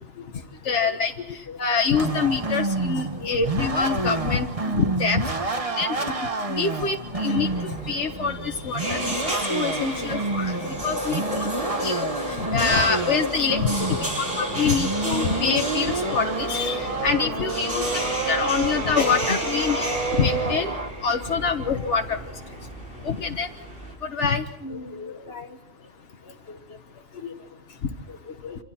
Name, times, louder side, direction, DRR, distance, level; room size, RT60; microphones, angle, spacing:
voice 1, 0.6-6.0 6.5-10.6 10.8-11.5 11.8-20.7 21.0-22.3 23.0-23.5 24.0-24.4, left 5 dB, 85° left, 4 dB, 1.5 m, -26 dB
sound 1, 1.9-20.9, right 3 dB, 30° right, 1.3 m, -29 dB
sound 2, 7.3-23.9, right 1 dB, 55° right, 6.6 m, -32 dB
voice 2, 13.8-14.2 15.4-15.6 17.7-17.8 24.6-25.5 26.5-26.6 27.2-27.3 28.3-28.6, left 4 dB, 65° left, 6 dB, 1.8 m, -37 dB
27.5 x 26.0 x 4.3 m, 0.78 s
omnidirectional pair, 1.2 m